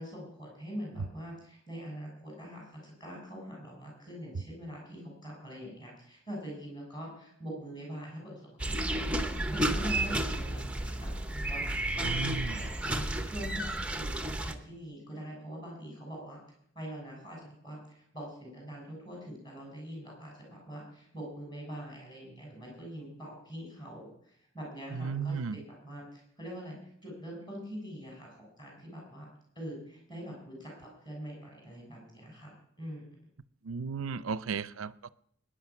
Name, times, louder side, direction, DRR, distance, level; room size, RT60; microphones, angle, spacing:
voice 1, 0.0-11.1 11.5-11.7 12.0-13.0 13.2-16.4 16.8-26.8 27.0-29.3 29.6-33.1, equal, 20° left, 6.8 m, -43 dB
Old Fashioned Waterpump, 8.6-14.5, right 1 dB, 5° right, 0.8 m, -32 dB
voice 2, 12.0-12.7 24.9-25.6 33.7-35.1, right 5 dB, 75° right, 0.5 m, -35 dB
21.0 x 10.0 x 5.9 m
head